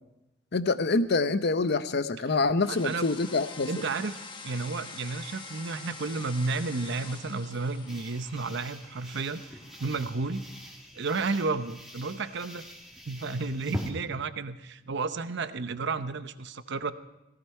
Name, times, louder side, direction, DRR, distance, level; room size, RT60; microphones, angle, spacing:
voice 1, 0.5-3.7, left 3 dB, 55° left, 12 dB, 0.7 m, -26 dB
voice 2, 2.2-3.1 3.7-10.5 11.0-12.7 13.1-16.9, right 3 dB, 60° right, 12 dB, 0.8 m, -32 dB
sound 1, 2.6-10.7, left 4 dB, 25° left, 1.2 m, -46 dB
sound 2, 7.9-13.9, equal, ahead, 2.2 m, -42 dB
17.5 x 16.5 x 4.5 m, 0.94 s
head